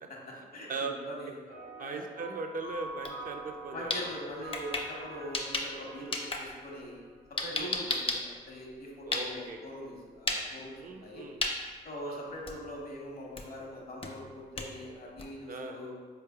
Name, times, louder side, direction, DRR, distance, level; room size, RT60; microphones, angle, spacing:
voice 1, 0.1-1.3 1.8-2.0 3.7-7.0 7.3-11.3 11.8-16.0, left 1 dB, 60° left, -2 dB, 1.0 m, -42 dB
sound 1, 1.5-7.3, right 3 dB, 90° right, 1.2 m, -46 dB
voice 2, 1.8-4.0 6.0-6.2 7.5-7.8 9.1-9.6 10.8-11.4 12.1-12.2 15.5-15.8, right 3 dB, 55° right, 4 dB, 0.4 m, -39 dB
sound 2, 2.9-3.1 3.5-5.8 6.1-9.6 10.2-10.4 10.8-11.1 11.4-11.6 12.0-12.1 12.5-12.8 13.4-13.6 14.0-15.4, left 2 dB, 30° left, 0.6 m, -34 dB
4.1 x 3.2 x 2.3 m, 1.5 s
supercardioid pair, 45°, 17 cm